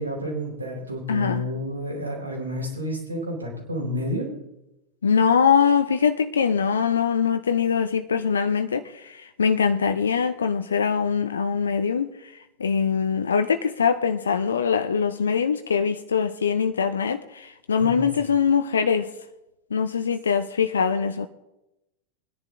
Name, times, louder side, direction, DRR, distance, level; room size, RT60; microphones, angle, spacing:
voice 1, 0.0-4.3 17.8-18.1, equal, 80° right, 4.2 m, -30 dB
voice 2, 1.1-1.4 5.0-12.1 12.6-19.1 19.7-21.3, left 6 dB, 70° left, 0.7 m, -22 dB
21.0 x 10.5 x 3.8 m
figure-of-eight pair, 90°, 0 cm